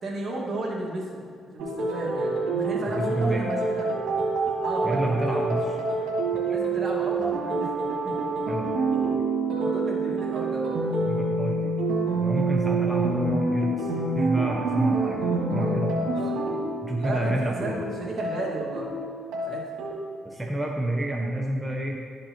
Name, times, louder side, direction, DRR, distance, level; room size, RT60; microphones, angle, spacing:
voice 1, 0.0-3.9 4.6-5.5 6.5-7.7 8.0-8.2 9.5-10.8 12.8-12.9 16.1-16.4 17.0-18.9 19.4-19.6, right 2 dB, 50° right, -3 dB, 1.6 m, -34 dB
sound 1, 1.6-19.9, right 3 dB, 85° right, 1.5 m, -27 dB
voice 2, 2.9-3.5 4.8-5.8 8.5-8.9 11.0-11.7 12.1-16.1 16.8-17.8 20.2-22.0, right 1 dB, 5° right, -2 dB, 0.7 m, -29 dB
11.5 x 5.3 x 2.9 m, 2.1 s
cardioid pair, 90°, 0 cm